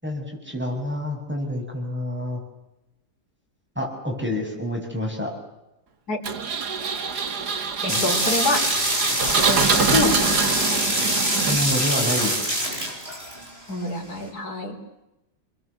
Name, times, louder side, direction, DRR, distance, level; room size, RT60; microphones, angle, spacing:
voice 1, 0.0-2.4 3.8-5.3 7.9-8.0 11.5-12.4, left 1 dB, 5° right, 1 dB, 7.2 m, -28 dB
Engine, 6.2-11.9, right 5 dB, 75° right, 2.3 m, -25 dB
voice 2, 7.8-8.6 9.5-10.5 13.7-14.8, left 2 dB, 65° left, 3 dB, 4.3 m, -26 dB
sound 1, 7.9-13.7, right 1 dB, 35° right, 6.7 m, -24 dB
28.5 x 22.0 x 8.3 m, 0.95 s
omnidirectional pair, 1.8 m